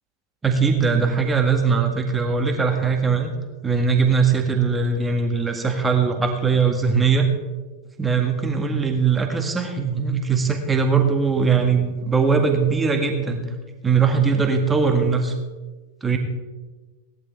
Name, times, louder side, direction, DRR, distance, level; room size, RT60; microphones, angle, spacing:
voice 1, 0.4-3.3 3.6-7.3 8.0-13.4 13.8-15.3 16.0-16.2, right 5 dB, 15° right, 4 dB, 1.7 m, -20 dB
17.5 x 12.0 x 3.2 m, 1.3 s
figure-of-eight pair, 90°, 0 cm